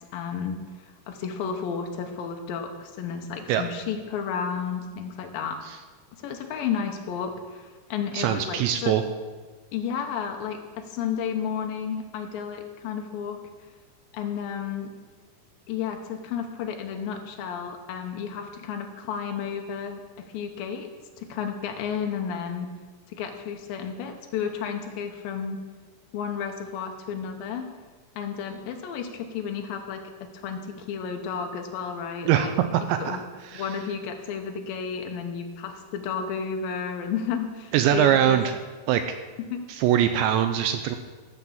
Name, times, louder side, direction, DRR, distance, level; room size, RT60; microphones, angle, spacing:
voice 1, 0.1-5.6 6.1-9.0 9.7-13.4 14.1-14.9 15.7-20.9 21.2-22.7 23.1-25.6 26.1-27.7 28.2-32.5 32.8-33.2 33.5-38.4 39.5-39.6, left 7 dB, 85° left, 4 dB, 2.1 m, -32 dB
voice 2, 8.2-9.0 32.3-33.2 33.5-33.7 37.7-38.6 38.9-39.0 39.7-41.0, right 10 dB, 85° right, 7 dB, 2.7 m, -22 dB
15.5 x 6.1 x 7.3 m, 1.3 s
omnidirectional pair, 5.5 m